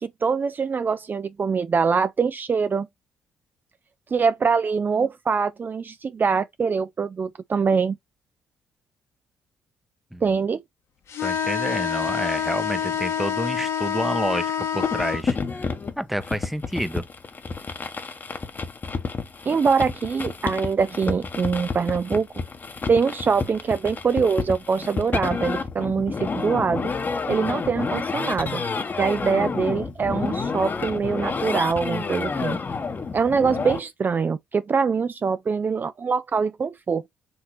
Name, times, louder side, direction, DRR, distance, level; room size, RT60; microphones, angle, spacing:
voice 1, 0.0-2.9 4.1-8.0 10.2-10.6 19.5-22.3 22.9-26.9 27.3-28.6 29.0-32.6 33.1-37.1, right 5 dB, 35° right, 0.4 m, -23 dB
sound 1, 11.1-15.2, left 8 dB, 60° left, 1.1 m, -27 dB
voice 2, 11.2-15.7 16.0-17.1, equal, ahead, 0.7 m, -29 dB
sound 2, 14.8-33.8, left 4 dB, 35° left, 1.0 m, -30 dB
5.2 x 2.8 x 3.2 m
hypercardioid pair, 50°, 5 cm